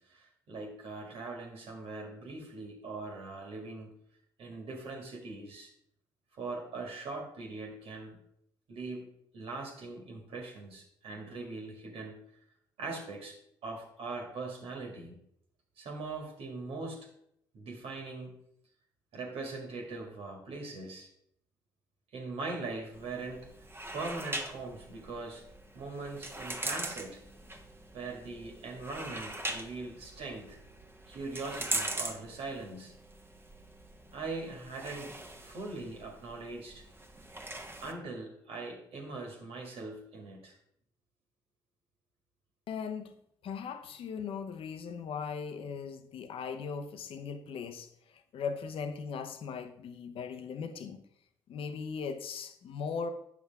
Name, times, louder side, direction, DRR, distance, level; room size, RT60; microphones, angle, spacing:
voice 1, 0.0-3.9 4.4-5.7 6.3-8.2 8.7-9.0 9.3-12.2 12.8-15.2 15.8-17.1 17.5-18.3 19.1-21.1 22.1-23.5 23.9-25.4 25.7-27.2 27.9-30.6 31.1-33.0 34.1-35.2 35.4-36.9 37.8-40.6, right 3 dB, 70° right, 1 dB, 1.8 m, -41 dB
sound 1, 22.9-37.9, right 2 dB, 20° right, 1.1 m, -41 dB
voice 2, 42.7-43.1 43.4-51.0 51.5-53.1, left 6 dB, 65° left, 8 dB, 0.8 m, -39 dB
8.2 x 6.0 x 3.5 m, 0.71 s
supercardioid pair, 55°, 10 cm